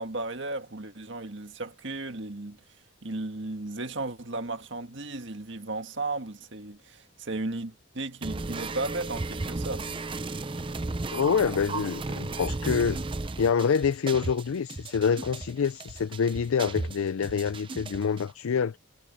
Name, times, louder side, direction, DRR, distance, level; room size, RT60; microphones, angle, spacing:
voice 1, 0.0-2.6 3.0-9.9, right 2 dB, 60° right, 1.8 m, -35 dB
sound 1, 8.2-18.2, right 3 dB, 25° right, 0.6 m, -35 dB
voice 2, 11.1-13.0 13.4-18.8, left 6 dB, 85° left, 0.4 m, -26 dB
head